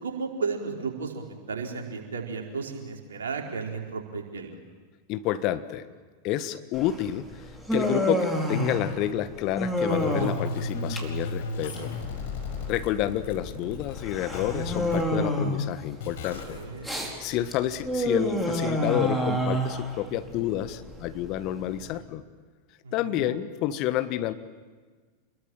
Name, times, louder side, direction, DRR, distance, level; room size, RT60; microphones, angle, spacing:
voice 1, 0.0-4.6 16.5-16.9 22.8-23.2, right 5 dB, 65° right, 1 dB, 4.6 m, -34 dB
voice 2, 5.1-5.9 6.2-7.3 7.7-11.9 12.7-16.6 17.0-22.2 22.9-24.3, left 13 dB, 40° left, 12 dB, 1.4 m, -29 dB
Human voice, 6.7-22.0, equal, ahead, 4.7 m, -30 dB
sound 1, 9.9-15.0 16.0-16.6, left 3 dB, 55° left, 5.1 m, -35 dB
29.0 x 22.0 x 9.0 m, 1.4 s
figure-of-eight pair, 90°, 0 cm